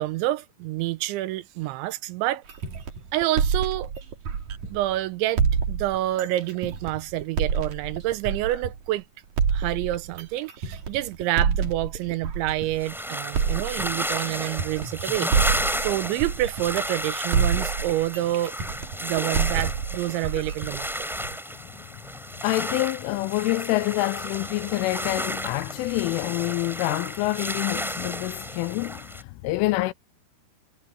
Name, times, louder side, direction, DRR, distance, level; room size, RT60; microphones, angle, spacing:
voice 1, 0.0-2.4 3.1-3.9 4.7-9.0 9.5-15.3 15.8-18.5 19.0-20.9, right 15 dB, 80° right, 2.8 m, -28 dB
sound 1, 2.5-4.9 5.4-8.9 9.4-12.9 13.3-17.0 17.3-21.4, right 6 dB, 50° right, 2.8 m, -27 dB
sound 2, 12.8-29.2, equal, ahead, 7.0 m, -32 dB
voice 2, 22.4-29.9, left 19 dB, 85° left, 3.0 m, -27 dB
omnidirectional pair, 5.9 m